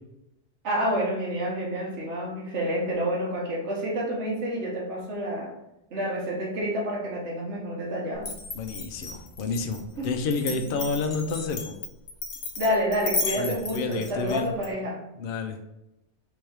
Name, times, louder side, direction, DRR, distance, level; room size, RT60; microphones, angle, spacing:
voice 1, 0.6-5.5 5.9-8.3 10.0-10.1 10.7-10.8 12.6-15.0, equal, 80° right, -3 dB, 1.5 m, -29 dB
Glass, 8.2-14.7, left 3 dB, 80° left, 1.1 m, -34 dB
voice 2, 8.5-11.7 13.4-14.5 15.2-15.8, left 4 dB, 60° left, 4 dB, 0.7 m, -30 dB
3.5 x 3.3 x 4.5 m, 0.89 s
omnidirectional pair, 1.2 m